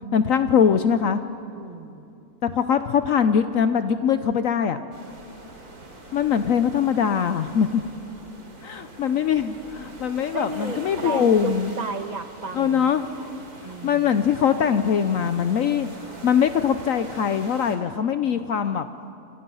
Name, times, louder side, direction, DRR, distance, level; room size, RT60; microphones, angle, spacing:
voice 1, 0.1-1.2 2.4-4.8 6.1-7.8 8.6-11.7 12.5-13.1 13.8-15.9 16.2-18.9, left 7 dB, 65° left, 10 dB, 1.1 m, -22 dB
voice 2, 1.5-2.1 10.3-12.9 13.6-14.2, right 3 dB, 30° right, 8 dB, 1.2 m, -33 dB
sound 1, 4.9-17.8, right 2 dB, 85° right, 3.6 m, -43 dB
27.5 x 26.5 x 5.6 m, 2.7 s
omnidirectional pair, 1.6 m